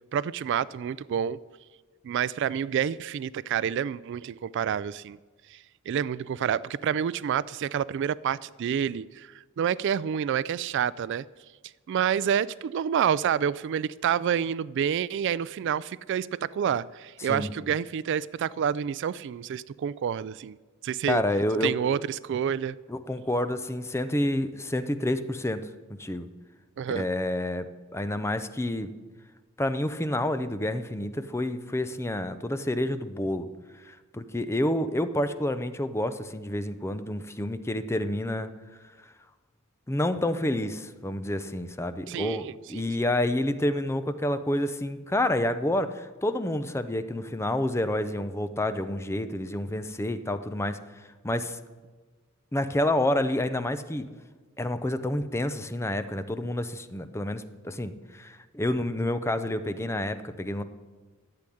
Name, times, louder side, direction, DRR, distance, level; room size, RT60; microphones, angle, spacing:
voice 1, 0.1-1.4 2.0-5.2 5.5-11.3 11.9-20.6 20.8-21.2 21.6-22.8 26.8-27.1 42.1-42.9, right 8 dB, 55° right, 20 dB, 0.3 m, -28 dB
voice 2, 21.1-21.7 22.9-25.7 26.0-26.3 26.9-28.9 29.6-33.5 33.8-38.5 39.9-51.6 52.5-54.1 54.6-60.6, left 1 dB, 10° left, 11 dB, 0.6 m, -29 dB
12.0 x 7.7 x 10.0 m, 1.3 s
head